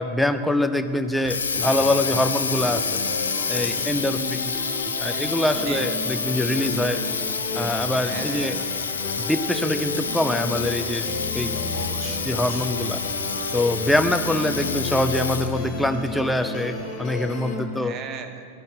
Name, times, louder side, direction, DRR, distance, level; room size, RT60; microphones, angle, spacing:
voice 1, 0.0-3.0 3.5-4.5 5.0-7.0 7.6-8.6 9.2-11.1 11.3-11.6 12.2-13.0 13.5-17.9, left 1 dB, 5° left, 8 dB, 0.4 m, -24 dB
Water tap faucet, 1.0-15.7, left 5 dB, 70° left, 0.4 m, -28 dB
sound 1, 1.5-17.5, left 2 dB, 40° left, 1.7 m, -33 dB
voice 2, 3.7-4.0 5.7-5.8 8.0-8.6 11.7-12.6 17.8-18.4, right 7 dB, 35° right, 7 dB, 0.7 m, -38 dB
12.0 x 5.4 x 4.6 m, 2.5 s
figure-of-eight pair, 90°, 0 cm